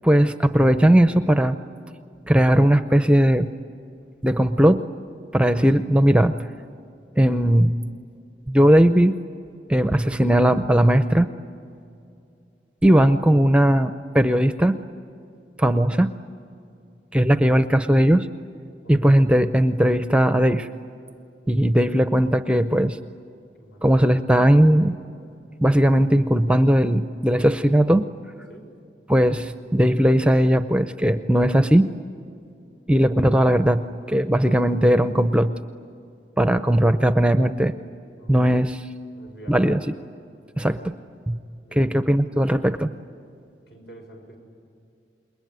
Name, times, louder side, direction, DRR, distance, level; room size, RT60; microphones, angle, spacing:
voice 1, 0.0-1.6 2.3-3.5 4.2-4.8 5.3-6.3 7.2-7.7 8.5-9.1 9.7-11.3 12.8-14.8 15.6-16.1 17.1-18.3 18.9-20.7 21.5-23.0 23.8-25.0 25.6-28.0 29.1-31.9 32.9-35.5 36.4-37.7 38.3-38.8 39.5-39.8 40.6-40.9 41.3-41.4 41.7-42.9, right 1 dB, 5° right, 10 dB, 0.5 m, -18 dB
voice 2, 18.8-19.2 23.6-23.8 28.5-28.7 38.1-38.6 39.1-39.7 41.6-42.1 43.7-44.4, right 2 dB, 70° left, 3 dB, 6.3 m, -46 dB
28.5 x 22.0 x 9.4 m, 2.5 s
head